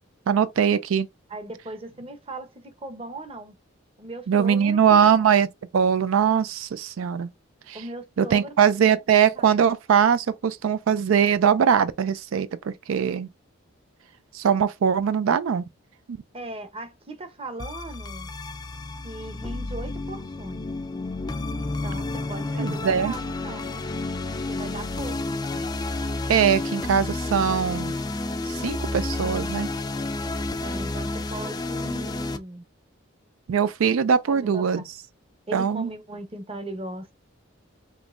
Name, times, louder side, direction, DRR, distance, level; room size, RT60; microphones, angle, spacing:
voice 1, 0.3-1.1 4.3-5.5 5.7-7.3 7.7-7.8 8.2-13.3 14.3-15.6 22.6-23.1 26.3-27.9 28.5-29.7 33.5-34.8 35.5-35.9, right 7 dB, 85° right, 0.4 m, -21 dB
voice 2, 1.3-3.6 4.0-5.1 7.7-8.5 9.4-9.5 16.3-18.3 19.0-20.7 21.6-23.7 24.5-25.6 30.6-32.6 34.3-34.8 35.5-37.1, right 2 dB, 30° right, 0.8 m, -38 dB
sound 1, 17.6-32.4, left 2 dB, 20° left, 0.4 m, -30 dB
5.2 x 3.0 x 2.5 m
head